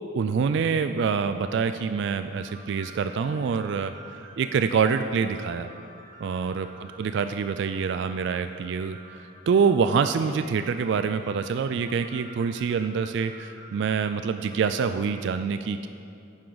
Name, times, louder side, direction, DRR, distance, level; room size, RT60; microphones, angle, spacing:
voice 1, 0.1-5.7 6.2-15.9, right 6 dB, 60° right, 10 dB, 0.3 m, -26 dB
sound 1, 2.3-15.3, right 2 dB, 85° right, 2.3 m, -49 dB
10.5 x 9.7 x 3.9 m, 2.6 s
head